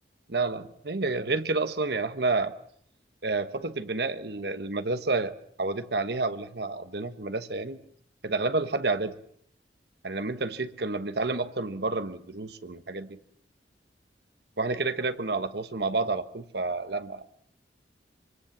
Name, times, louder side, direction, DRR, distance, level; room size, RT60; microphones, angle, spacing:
voice 1, 0.3-2.5 3.2-7.8 8.2-9.1 10.0-13.2 14.6-17.2, right 3 dB, 65° right, 10 dB, 1.3 m, -29 dB
25.5 x 24.5 x 7.3 m, 0.65 s
head